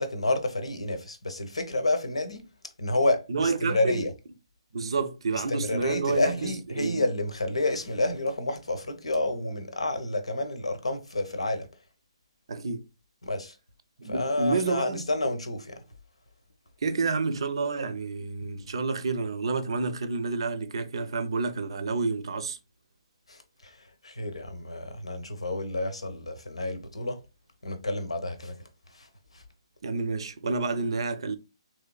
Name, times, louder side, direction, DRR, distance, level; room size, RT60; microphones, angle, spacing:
voice 1, 0.0-2.4 2.8-4.1 5.3-11.7 13.2-13.5 14.1-15.8 23.3-23.4 24.0-27.2 27.6-28.5, left 2 dB, 85° left, 0.8 m, -29 dB
voice 2, 3.3-4.1 4.7-7.1 12.5-12.8 14.0-15.0 16.8-22.6 29.8-31.4, right 4 dB, 60° right, 0.5 m, -29 dB
3.4 x 3.1 x 2.3 m
figure-of-eight pair, 140°, 3 cm